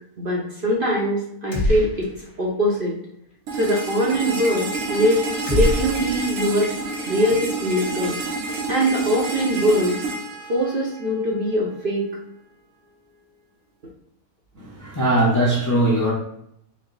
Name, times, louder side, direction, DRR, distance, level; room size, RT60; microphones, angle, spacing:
voice 1, 0.2-2.1 2.4-3.0 3.5-5.2 5.5-6.7 7.1-8.2 8.7-10.0 10.5-12.0, equal, 50° right, -3 dB, 0.7 m, -22 dB
sound 1, 1.5-2.4 2.7-2.8 5.5-6.8, left 1 dB, 40° left, 1.1 m, -25 dB
sound 2, 3.5-11.4, right 3 dB, 80° right, 1.2 m, -29 dB
voice 2, 14.6-16.1, right 1 dB, 20° left, -4 dB, 0.4 m, -20 dB
4.3 x 2.1 x 3.8 m, 0.75 s
omnidirectional pair, 1.5 m